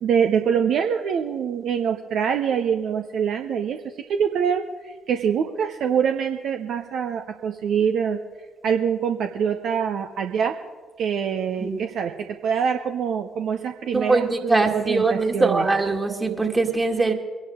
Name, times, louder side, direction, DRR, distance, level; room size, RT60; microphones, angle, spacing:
voice 1, 0.0-3.8 4.1-8.2 8.6-10.5 11.0-12.1 12.4-15.7, right 7 dB, 60° right, 5 dB, 0.7 m, -24 dB
voice 2, 13.9-17.1, right 3 dB, 20° right, 3 dB, 2.1 m, -22 dB
24.0 x 11.0 x 3.6 m, 1.5 s
figure-of-eight pair, 40°, 0 cm